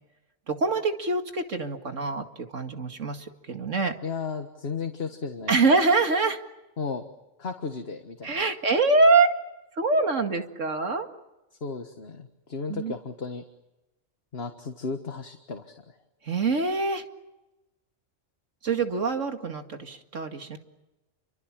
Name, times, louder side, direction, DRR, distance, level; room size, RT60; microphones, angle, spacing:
voice 1, 0.5-3.9 5.5-6.4 8.2-9.3 9.8-11.1 12.7-12.9 16.2-17.0 18.6-20.6, right 3 dB, 80° right, 6 dB, 2.5 m, -24 dB
voice 2, 4.0-5.5 6.8-7.1 7.4-8.3 11.6-13.4 14.3-16.0, left 5 dB, 55° left, 6 dB, 1.7 m, -34 dB
29.0 x 25.0 x 7.5 m, 1.0 s
omnidirectional pair, 1.3 m